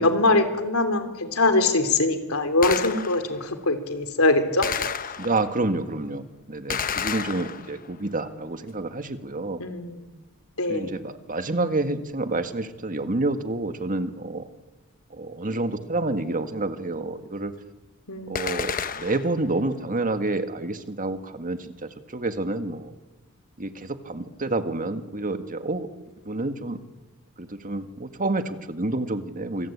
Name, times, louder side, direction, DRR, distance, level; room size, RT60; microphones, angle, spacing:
voice 1, 0.0-4.7 9.6-10.0 10.6-10.9 18.1-18.5, left 2 dB, 80° left, 7 dB, 3.5 m, -23 dB
Gunshot gunfire, 2.6-3.4 4.6-5.6 6.7-8.0 18.4-19.4, left 7 dB, 40° left, 1.0 m, -31 dB
voice 2, 5.2-9.6 10.7-14.5 15.1-17.5 18.3-22.9 23.6-25.9 26.3-26.8 27.4-29.7, right 2 dB, 40° right, 8 dB, 1.8 m, -28 dB
26.5 x 24.5 x 8.7 m, 1.1 s
head